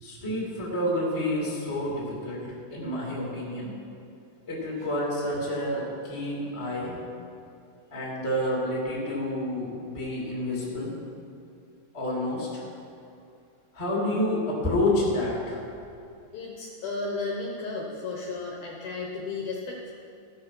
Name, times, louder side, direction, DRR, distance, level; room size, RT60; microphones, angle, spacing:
voice 1, 0.0-3.7 4.5-6.9 7.9-10.9 11.9-12.6 13.7-15.6, left 1 dB, 10° left, -5 dB, 1.9 m, -29 dB
voice 2, 16.3-19.9, left 3 dB, 70° left, -3 dB, 2.4 m, -34 dB
16.0 x 6.4 x 6.1 m, 2.5 s
omnidirectional pair, 5.3 m